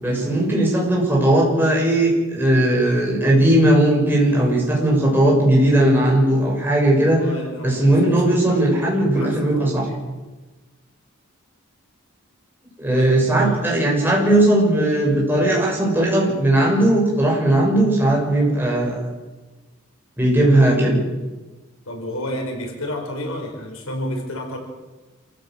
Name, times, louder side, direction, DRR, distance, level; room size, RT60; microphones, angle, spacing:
voice 1, 0.0-7.2 7.6-9.8 12.8-19.0 20.2-21.0, right 1 dB, 10° right, -3 dB, 6.6 m, -17 dB
voice 2, 7.2-8.7 9.1-10.0 12.9-13.7 21.9-24.6, left 1 dB, 85° left, 2 dB, 5.5 m, -31 dB
27.5 x 15.5 x 7.8 m, 1.2 s
head